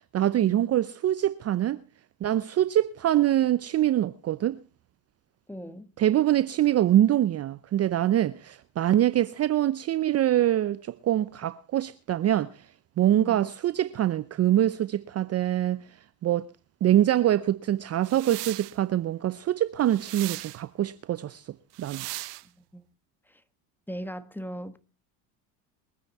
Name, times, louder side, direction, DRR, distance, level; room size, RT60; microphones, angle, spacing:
voice 1, 0.1-1.8 2.2-4.6 6.0-12.5 13.0-15.8 16.2-16.5 16.8-21.4 21.8-22.0, right 12 dB, 35° right, 0.7 m, -24 dB
voice 2, 5.5-5.9 13.1-13.5 22.7-22.8 23.3-23.4 23.9-24.8, equal, 5° left, 1.2 m, -38 dB
sound 1, 18.0-18.8 19.9-20.6 21.7-22.4, right 19 dB, 80° right, 1.0 m, -38 dB
23.0 x 9.6 x 4.2 m
supercardioid pair, 90°, 46 cm